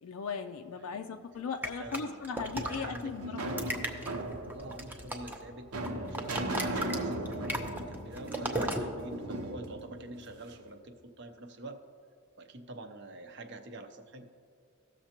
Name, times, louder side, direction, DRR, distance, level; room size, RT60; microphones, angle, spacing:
voice 1, 0.0-3.6, left 5 dB, 75° left, 5 dB, 0.4 m, -38 dB
voice 2, 0.8-1.4 1.8-2.2 2.6-3.2 3.4-3.9 4.5-11.8 12.4-14.3, right 1 dB, 50° right, 7 dB, 0.6 m, -46 dB
sound 1, 1.6-3.0 3.4-5.5 5.7-8.8, right 1 dB, 10° right, 0.5 m, -36 dB
sound 2, 2.5-10.7, right 1 dB, 85° right, 0.9 m, -38 dB
16.0 x 6.5 x 2.9 m, 2.4 s
head